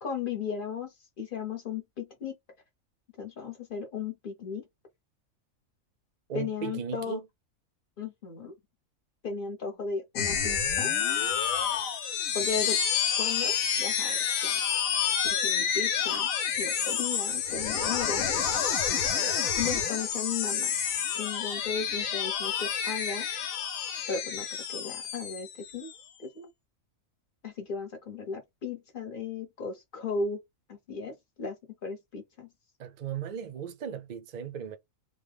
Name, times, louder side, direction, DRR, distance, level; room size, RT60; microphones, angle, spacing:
voice 1, 0.0-2.4 3.2-4.6 6.3-7.2 8.0-8.5 9.2-10.9 12.3-12.8 13.2-14.6 15.3-16.3 16.6-18.3 19.5-20.7 21.2-23.3 24.1-25.9 26.2-26.5 27.4-30.4 30.7-31.6 31.8-32.5, left 5 dB, 45° left, 1.0 m, -36 dB
voice 2, 6.3-7.2 32.8-34.8, right 8 dB, 50° right, 0.6 m, -37 dB
sound 1, 10.2-26.0, left 8 dB, 85° left, 1.2 m, -29 dB
3.1 x 2.2 x 3.4 m
omnidirectional pair, 1.4 m